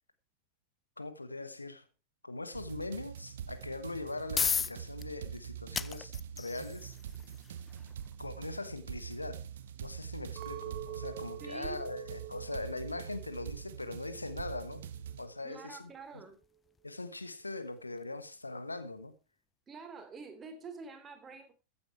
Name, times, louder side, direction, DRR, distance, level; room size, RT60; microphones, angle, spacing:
voice 1, 1.0-1.8 2.2-7.0 8.2-9.5 9.8-14.8 15.2-16.2 16.8-19.1, left 2 dB, 80° left, 1.2 m, -41 dB
sound 1, 2.5-15.3, right 9 dB, 60° right, 1.0 m, -44 dB
sound 2, 4.3-18.7, left 6 dB, 20° left, 0.6 m, -42 dB
Chink clink, 10.4-14.7 15.0-15.8, right 13 dB, 45° right, 1.7 m, -47 dB
voice 2, 11.4-11.8 15.4-16.4 19.7-21.5, right 4 dB, 20° right, 3.1 m, -47 dB
15.0 x 8.7 x 4.5 m
figure-of-eight pair, 90°, 0 cm